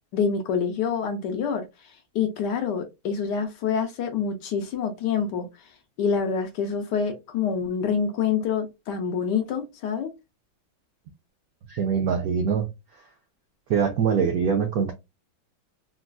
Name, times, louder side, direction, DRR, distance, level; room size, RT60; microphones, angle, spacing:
voice 1, 0.1-1.6 2.1-5.5 6.0-10.1, left 6 dB, 70° left, 1.1 m, -26 dB
voice 2, 11.7-12.7 13.7-14.9, right 6 dB, 85° right, 0.8 m, -23 dB
3.8 x 2.3 x 2.3 m
omnidirectional pair, 2.1 m